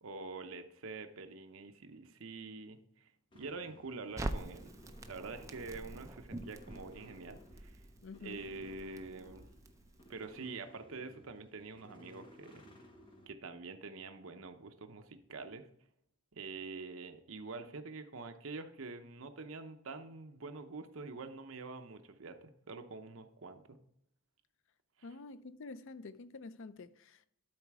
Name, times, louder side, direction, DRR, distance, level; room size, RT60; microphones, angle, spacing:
voice 1, 0.0-3.1 3.3-4.7 5.1-7.8 8.2-9.5 10.1-12.6 13.3-15.7 16.3-23.8 25.0-25.1, right 3 dB, 65° right, 0.8 m, -46 dB
sound 1, 3.3-13.3, equal, 25° left, 1.5 m, -59 dB
Crackle, 4.2-10.3, right 1 dB, 15° right, 0.5 m, -45 dB
voice 2, 8.0-8.4 25.0-27.3, left 3 dB, 60° left, 0.5 m, -48 dB
12.0 x 4.1 x 4.7 m
head